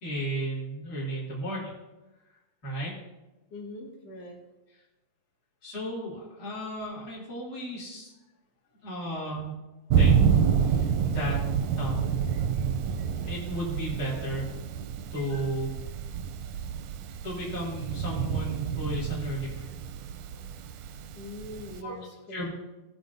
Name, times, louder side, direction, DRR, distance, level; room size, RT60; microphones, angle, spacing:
voice 1, 0.0-1.7 2.6-2.9 5.6-8.1 8.8-9.6 10.0-11.4 11.8-12.2 13.2-14.5 15.1-15.7 17.2-19.8 21.8-21.9 22.3-22.5, right 1 dB, 35° left, -8 dB, 2.7 m, -34 dB
voice 2, 3.5-4.4 15.2-15.4 20.8-22.5, left 1 dB, 60° left, -1 dB, 2.9 m, -42 dB
Thunder, 9.9-21.8, right 7 dB, 75° right, 1.8 m, -28 dB
17.5 x 7.3 x 2.6 m, 1.0 s
omnidirectional pair, 3.3 m